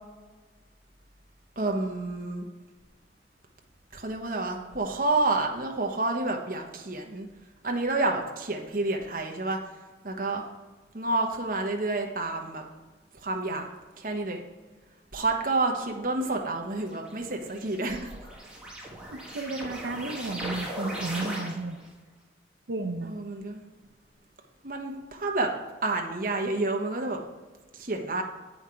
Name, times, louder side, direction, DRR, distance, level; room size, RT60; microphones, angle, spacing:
voice 1, 1.6-2.5 3.9-7.3 7.6-9.6 10.0-10.4 10.9-12.6 13.1-13.7 14.0-14.4 15.1-18.1 23.0-23.6 24.6-25.5 25.8-27.2 27.7-28.2, right 2 dB, 50° right, 2 dB, 1.0 m, -29 dB
sound 1, 16.9-21.9, right 1 dB, 5° right, 1.4 m, -38 dB
voice 2, 19.1-21.8 22.7-23.1, right 2 dB, 80° right, 4 dB, 0.7 m, -33 dB
8.4 x 5.7 x 4.4 m, 1.3 s
head